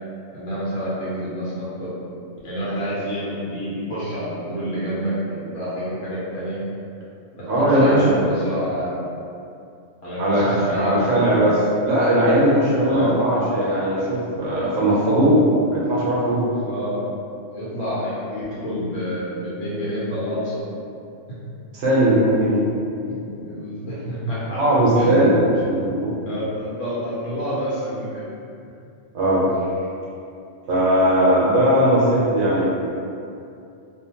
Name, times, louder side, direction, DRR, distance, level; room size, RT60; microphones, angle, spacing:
voice 1, 0.3-1.9 2.4-6.6 7.4-8.9 10.0-11.4 12.8-13.1 16.6-17.0 17.5-20.6 21.3-21.4 23.4-24.6 24.9-25.3 26.2-28.2, equal, 75° left, -9 dB, 1.0 m, -28 dB
voice 2, 7.5-8.3 10.2-16.5 21.8-22.6 24.5-25.4 25.6-26.1 29.1-29.4 30.7-32.6, right 1 dB, 80° right, -7 dB, 1.0 m, -18 dB
2.5 x 2.1 x 2.7 m, 2.5 s
omnidirectional pair, 1.3 m